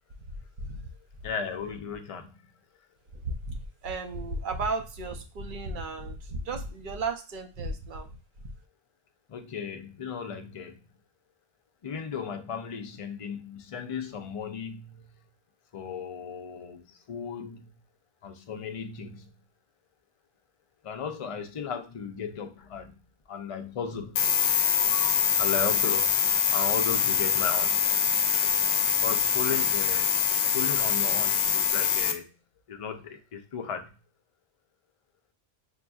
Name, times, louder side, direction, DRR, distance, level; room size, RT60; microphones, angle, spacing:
voice 1, 0.6-0.9 3.1-8.5, right 3 dB, 55° right, 0.6 m, -34 dB
voice 2, 1.2-2.5 9.3-10.9 11.8-15.2 15.7-17.7 18.2-19.3 20.8-23.0 23.3-27.7 28.9-30.2 30.5-32.3 32.7-33.9, left 6 dB, 45° left, 0.4 m, -36 dB
sound 1, 24.1-32.1, left 7 dB, 70° left, 0.8 m, -24 dB
5.5 x 2.5 x 2.3 m
omnidirectional pair, 1.2 m